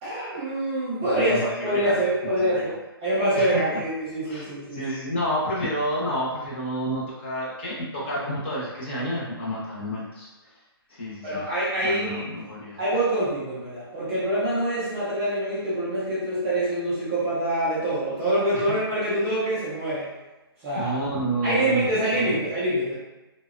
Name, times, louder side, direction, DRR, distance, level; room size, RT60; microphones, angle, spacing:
voice 1, 0.0-2.7 3.0-4.8 11.2-12.2 12.8-20.1 20.6-21.0 21.4-22.9, right 1 dB, 5° right, -10 dB, 0.3 m, -25 dB
voice 2, 1.1-2.8 3.4-3.8 4.2-10.3 10.9-11.4 11.8-12.8 18.5-18.6 20.8-21.9 22.2-22.4, equal, 25° left, -6 dB, 0.6 m, -30 dB
2.7 x 2.0 x 2.3 m, 1.1 s
hypercardioid pair, 170°, 13 cm